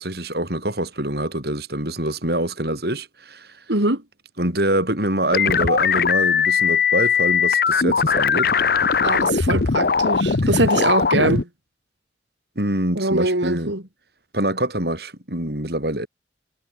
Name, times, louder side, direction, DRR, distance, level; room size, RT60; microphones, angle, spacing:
voice 1, 0.0-3.5 4.4-8.5 12.5-13.7 14.3-16.1, right 1 dB, 60° right, 6.6 m, -25 dB
voice 2, 3.7-4.0 9.0-11.5 12.9-13.8, right 2 dB, 75° right, 4.6 m, -22 dB
sound 1, 5.3-11.4, left 6 dB, 55° left, 0.7 m, -19 dB
head